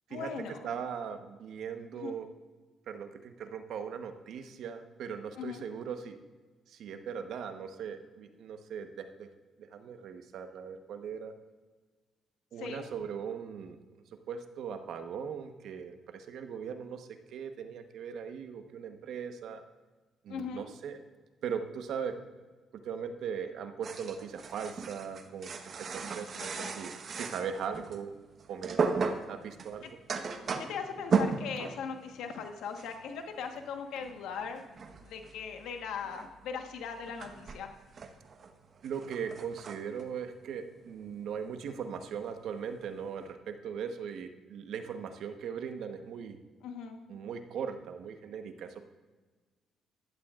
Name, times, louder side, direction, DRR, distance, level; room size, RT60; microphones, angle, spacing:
voice 1, 0.1-0.7 1.9-2.1 5.4-5.6 12.6-12.9 20.3-20.7 26.4-26.7 29.8-29.9 30.6-34.6 35.0-37.7 46.6-47.0, left 6 dB, 85° left, 5 dB, 1.2 m, -39 dB
voice 2, 0.6-2.3 2.9-6.2 6.7-9.3 9.6-11.3 12.5-13.8 14.3-19.6 20.2-21.0 21.4-22.2 22.8-28.1 28.5-28.9 29.3-29.9 38.8-46.4 47.1-48.8, right 7 dB, 75° right, 7 dB, 1.0 m, -39 dB
sound 1, 23.8-28.0 28.3-32.5 32.7-33.1 33.4-41.3 41.7-42.0 42.3-43.2, right 5 dB, 50° right, 1.1 m, -36 dB
15.0 x 11.5 x 2.5 m, 1.3 s
cardioid pair, 90°, 0 cm